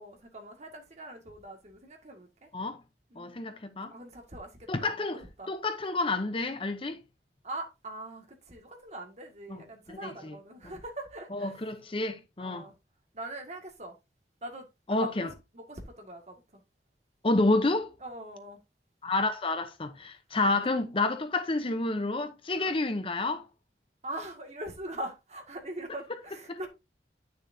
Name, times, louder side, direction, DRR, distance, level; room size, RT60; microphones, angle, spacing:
voice 1, 0.0-2.5 3.1-3.5 3.9-4.5 4.8-5.5 7.4-11.6 12.4-12.7 13.1-13.9 14.4-15.3 15.5-16.4 18.0-18.6 20.6-20.7 22.5-22.8 24.0-26.7, right 1 dB, 40° right, 2.0 m, -42 dB
voice 2, 3.2-3.9 4.7-5.2 5.5-7.0 9.5-9.6 9.9-10.4 11.3-12.7 14.9-15.3 17.2-17.9 19.0-23.4 26.5-26.6, left 2 dB, 30° left, 0.7 m, -29 dB
9.8 x 6.6 x 2.7 m
head